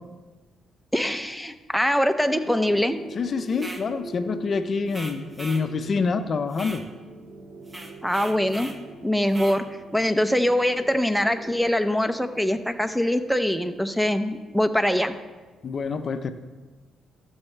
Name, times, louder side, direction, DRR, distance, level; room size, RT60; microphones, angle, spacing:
voice 1, 0.9-3.0 8.0-8.7 9.0-9.6 9.9-15.2, left 1 dB, ahead, 7 dB, 0.5 m, -23 dB
sound 1, 2.3-14.2, right 2 dB, 55° right, 2.5 m, -44 dB
voice 2, 3.2-6.8 15.6-16.3, left 4 dB, 45° left, 10 dB, 0.5 m, -27 dB
sound 2, 3.5-3.9 4.9-5.7 6.5-6.9 7.7-8.8 9.3-9.6, right 1 dB, 20° right, 1.0 m, -39 dB
13.0 x 7.1 x 3.3 m, 1.3 s
cardioid pair, 90°, 0 cm